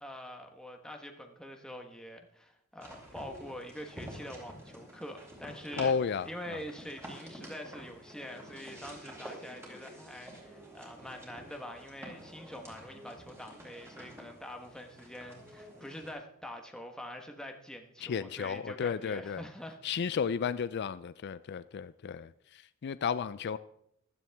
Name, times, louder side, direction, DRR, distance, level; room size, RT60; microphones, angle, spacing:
voice 1, 0.0-5.9 6.2-20.1, equal, 5° left, 1.2 m, -45 dB
sound 1, 2.8-16.1, right 1 dB, 15° right, 4.1 m, -49 dB
voice 2, 5.8-6.6 18.0-19.4 19.8-23.6, left 6 dB, 55° left, 0.4 m, -33 dB
15.5 x 12.5 x 3.5 m
head